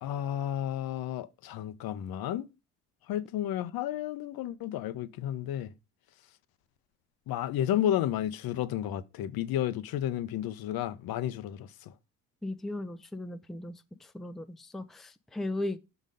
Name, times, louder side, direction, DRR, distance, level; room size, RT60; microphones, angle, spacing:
voice 1, 0.0-2.5 3.1-5.7 7.3-11.7, left 11 dB, 60° left, 0.7 m, -32 dB
voice 2, 12.4-13.7 14.1-15.8, left 1 dB, ahead, 0.5 m, -36 dB
6.1 x 3.9 x 5.2 m
hypercardioid pair, 60°, 42 cm